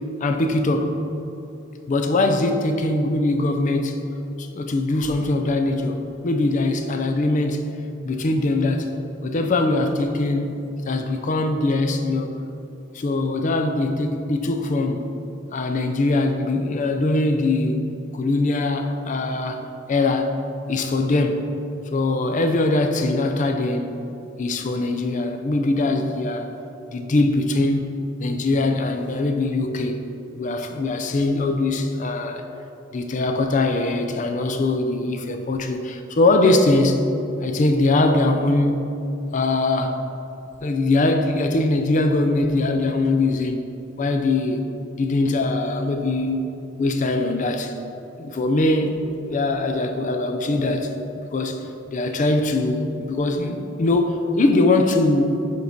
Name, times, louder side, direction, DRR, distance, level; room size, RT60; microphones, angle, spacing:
voice 1, 0.2-1.0 1.9-4.0 4.4-7.7 8.0-8.9 9.2-12.3 12.9-15.1 15.5-17.8 18.1-19.6 19.9-20.3 20.7-21.6 21.9-24.0 24.4-26.5 26.9-27.9 28.2-30.0 30.4-32.4 32.9-37.1 37.4-38.9 39.3-40.0 40.6-43.7 44.0-44.6 45.0-46.4 46.8-47.7 48.2-49.0 49.3-51.0 51.3-51.6 51.9-55.5, left 2 dB, 40° left, 6 dB, 0.4 m, -22 dB
4.9 x 4.6 x 5.1 m, 2.8 s
head